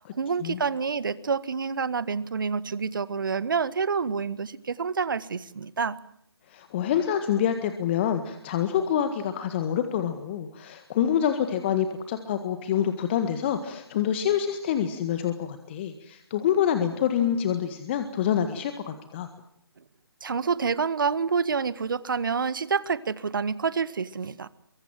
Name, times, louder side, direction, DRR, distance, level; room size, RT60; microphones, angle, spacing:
voice 1, 0.1-6.0 20.2-24.5, right 5 dB, 55° right, 17 dB, 1.6 m, -28 dB
voice 2, 6.5-19.3, left 9 dB, 25° left, 9 dB, 1.7 m, -26 dB
24.0 x 24.0 x 7.5 m, 0.70 s
figure-of-eight pair, 145°, 13 cm